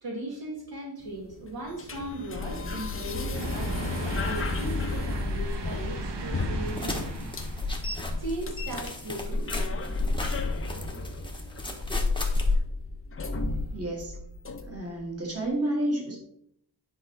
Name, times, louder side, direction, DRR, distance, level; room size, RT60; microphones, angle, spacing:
voice 1, 0.0-7.1 8.2-9.5, right 1 dB, 55° right, -3 dB, 2.0 m, -38 dB
sound 1, 1.0-15.0, left 2 dB, 30° left, 0.9 m, -33 dB
sound 2, 3.3-8.9 9.4-9.5 10.8-10.9, right 4 dB, 70° right, 1.2 m, -39 dB
sound 3, 6.7-12.6, left 3 dB, 10° left, 1.2 m, -32 dB
voice 2, 13.7-14.1 14.7-16.2, right 1 dB, 35° right, 0 dB, 2.3 m, -30 dB
9.8 x 5.4 x 4.0 m, 0.71 s
wide cardioid pair, 145°, 43 cm